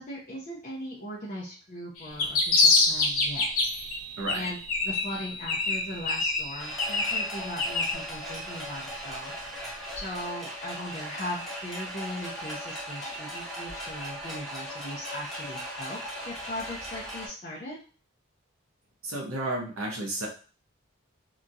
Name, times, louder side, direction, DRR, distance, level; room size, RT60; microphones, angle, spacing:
voice 1, 0.1-3.5 4.3-9.3 9.9-16.0 16.2-17.8, left 1 dB, 35° left, -5 dB, 0.6 m, -39 dB
sound 1, 2.0-3.9 4.3-5.2 5.5-7.9, left 3 dB, 90° left, 0.7 m, -25 dB
Chime, 2.1-10.2, right 3 dB, 40° right, 0.6 m, -43 dB
sound 2, 6.6-17.3, equal, ahead, 0.7 m, -38 dB
voice 2, 19.0-20.3, right 2 dB, 80° right, 0 dB, 0.9 m, -32 dB
2.8 x 2.3 x 2.6 m, 0.37 s
head